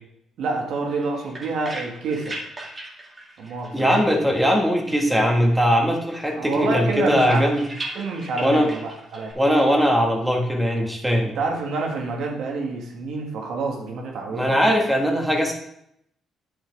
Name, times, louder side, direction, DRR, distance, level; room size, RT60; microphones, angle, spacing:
voice 1, 0.4-2.4 3.4-3.9 6.3-7.5 7.9-9.3 11.2-14.7, right 3 dB, 75° right, 1 dB, 1.8 m, -28 dB
sound 1, 0.9-4.6 4.9-5.8 6.1-9.3, right 1 dB, 25° right, 2.1 m, -38 dB
voice 2, 3.7-7.6 8.4-8.7 9.4-11.4 14.3-15.5, equal, 5° right, 1 dB, 1.7 m, -20 dB
9.7 x 6.3 x 3.5 m, 0.75 s
cardioid pair, 90°, 0 cm